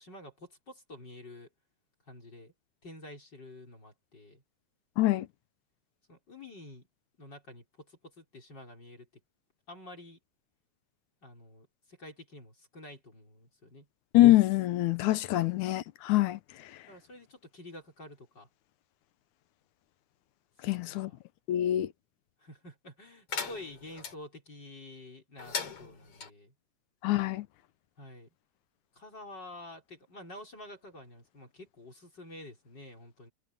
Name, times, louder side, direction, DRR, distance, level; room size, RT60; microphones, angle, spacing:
voice 1, 0.0-1.5 2.1-2.5 2.8-4.4 6.1-6.9 7.2-9.1 9.7-10.2 11.2-13.9 16.9-18.5 20.6-21.2 22.4-26.5 28.0-28.3 28.9-33.3, left 1 dB, 35° left, 5.5 m, -49 dB
voice 2, 5.0-5.3 14.1-16.4 20.7-21.1 21.5-21.9 27.0-27.5, left 15 dB, 80° left, 2.3 m, -24 dB
sound 1, 23.3-24.1 25.4-26.3, left 6 dB, 50° left, 3.5 m, -38 dB
omnidirectional pair, 3.5 m